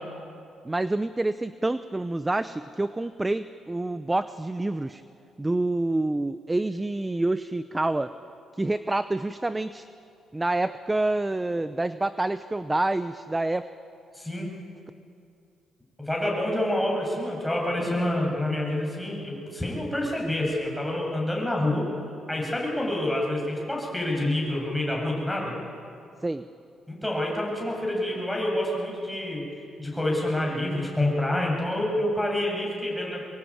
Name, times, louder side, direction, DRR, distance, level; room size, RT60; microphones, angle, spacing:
voice 1, 0.6-5.0 5.4-8.1 8.5-9.9 10.3-13.7 26.2-26.4, right 2 dB, 15° right, 12 dB, 0.7 m, -27 dB
voice 2, 14.1-14.5 16.0-21.9 22.3-25.6 26.9-29.5 29.8-33.2, left 1 dB, 5° left, -2 dB, 8.0 m, -27 dB
25.0 x 22.5 x 8.9 m, 2.6 s
cardioid pair, 90°, 0 cm